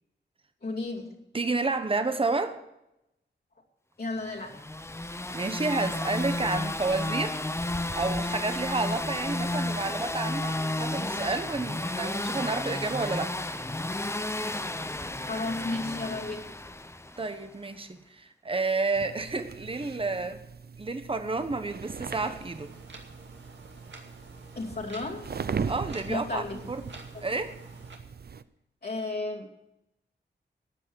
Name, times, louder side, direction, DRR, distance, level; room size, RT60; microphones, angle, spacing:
voice 1, 0.6-1.2 4.0-4.6 15.2-16.5 24.5-25.3 26.1-26.6 27.1-27.2 28.8-29.5, left 2 dB, 55° left, -3 dB, 2.7 m, -33 dB
voice 2, 1.3-2.6 5.3-7.3 7.9-13.4 17.2-20.4 20.8-22.7 25.7-26.8 27.2-27.5, right 3 dB, 30° right, 9 dB, 1.1 m, -30 dB
sound 1, 4.4-17.4, left 1 dB, 15° left, 0.8 m, -32 dB
sound 2, 18.9-28.4, right 6 dB, 55° right, 0.6 m, -39 dB
sound 3, 22.2-28.0, right 3 dB, 75° right, 2.4 m, -49 dB
13.5 x 10.0 x 6.3 m, 0.86 s
wide cardioid pair, 95°, 19 cm